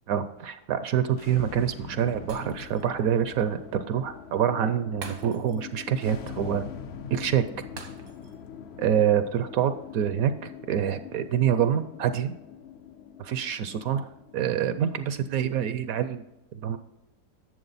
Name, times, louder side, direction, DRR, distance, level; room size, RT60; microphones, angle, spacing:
voice 1, 0.1-6.6 7.1-7.4 8.8-12.3 13.2-16.2 16.5-16.8, right 9 dB, 70° right, 11 dB, 0.9 m, -26 dB
sound 1, 1.2-16.1, left 7 dB, 65° left, 0.6 m, -43 dB
Shatter, 2.3-3.0 3.4-3.5 5.0-5.8 6.1-6.2 7.8-8.5 8.8-9.0, right 5 dB, 90° right, 1.9 m, -45 dB
10.5 x 7.3 x 4.0 m, 0.93 s
omnidirectional pair, 1.8 m